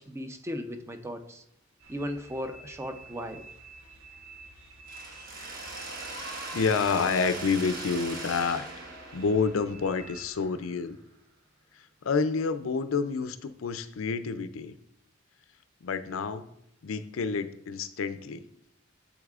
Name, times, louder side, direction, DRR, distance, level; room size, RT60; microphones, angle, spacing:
voice 1, 0.0-1.4 1.9-3.4, equal, 15° right, 7 dB, 0.5 m, -36 dB
sound 1, 1.8-10.3, right 3 dB, 80° right, 1.2 m, -51 dB
Mechanisms, 4.9-10.7, right 2 dB, 45° right, 1.4 m, -40 dB
voice 2, 6.2-8.7 9.1-11.0 11.8-14.8 15.8-16.5 16.8-18.5, left 5 dB, 80° left, 12 dB, 0.5 m, -29 dB
8.0 x 7.1 x 2.4 m, 0.77 s
head